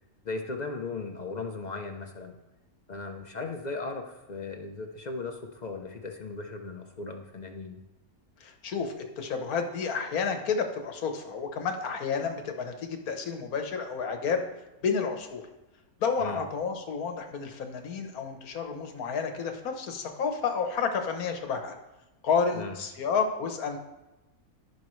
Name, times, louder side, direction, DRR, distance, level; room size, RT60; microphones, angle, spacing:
voice 1, 0.2-2.3 2.9-7.8 16.2-16.4 22.5-22.8, left 3 dB, 45° left, 4 dB, 0.6 m, -37 dB
voice 2, 8.4-14.4 14.8-15.4 16.0-21.8 22.2-23.8, left 5 dB, 75° left, 5 dB, 1.5 m, -30 dB
15.5 x 5.3 x 3.2 m, 1.0 s
omnidirectional pair, 1.6 m